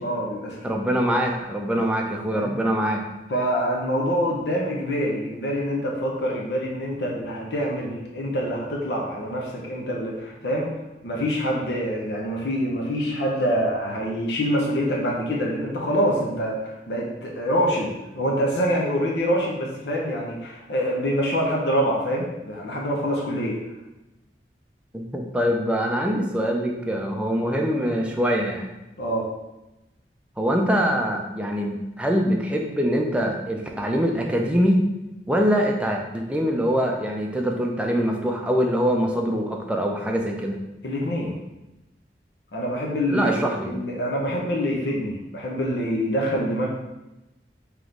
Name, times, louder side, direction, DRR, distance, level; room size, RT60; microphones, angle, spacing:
voice 1, 0.0-0.6 2.3-2.5 3.3-10.7 11.0-23.6 29.0-29.2 40.8-41.4 42.5-46.7, equal, 75° left, -2 dB, 0.7 m, -25 dB
voice 2, 0.6-3.0 24.9-28.7 30.4-34.8 35.3-40.6 43.1-43.7, equal, 5° right, 1 dB, 0.4 m, -23 dB
3.5 x 2.9 x 3.8 m, 0.98 s
head